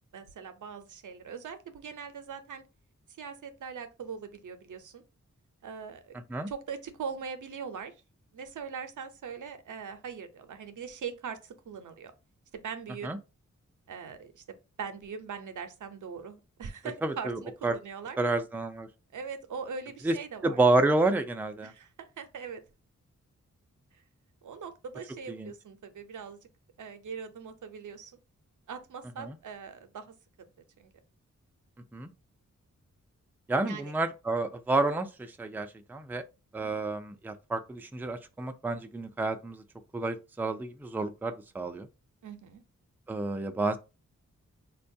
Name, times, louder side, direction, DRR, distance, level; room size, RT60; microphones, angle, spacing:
voice 1, 0.1-2.6 3.2-5.0 5.6-6.1 6.5-7.9 8.3-12.1 12.5-13.2 13.9-14.4 14.8-18.2 19.1-20.6 21.6-22.6 24.4-26.4 26.8-28.1 28.7-30.0 30.8-30.9 33.6-33.9 36.6-36.7 42.2-42.6, right 6 dB, 75° right, 0.6 m, -41 dB
voice 2, 6.1-6.5 13.0-13.2 17.0-17.8 18.2-18.9 20.0-20.1 20.4-21.7 25.3-25.5 29.2-29.4 31.9-32.1 33.5-36.2 36.5-39.6 39.9-41.9 43.1-43.8, right 2 dB, 5° right, 0.4 m, -29 dB
4.3 x 2.3 x 2.6 m
wide cardioid pair, 80°, 31 cm